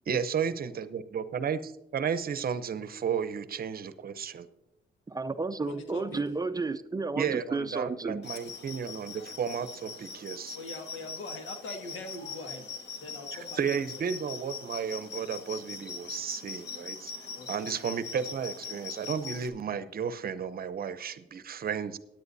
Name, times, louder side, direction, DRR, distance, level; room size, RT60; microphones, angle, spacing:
voice 1, 0.1-4.5 7.2-10.6 13.3-17.1 17.5-22.0, right 7 dB, 50° right, 12 dB, 0.7 m, -33 dB
voice 2, 5.1-8.3, right 3 dB, 20° right, 11 dB, 0.5 m, -32 dB
voice 3, 5.6-6.2 10.5-12.7 13.0-13.6 17.3-17.7, left 2 dB, 75° left, 5 dB, 1.8 m, -42 dB
sound 1, 8.2-19.5, left 5 dB, 60° left, 1.7 m, -42 dB
17.0 x 10.5 x 2.7 m, 0.89 s
cardioid pair, 90°, 20 cm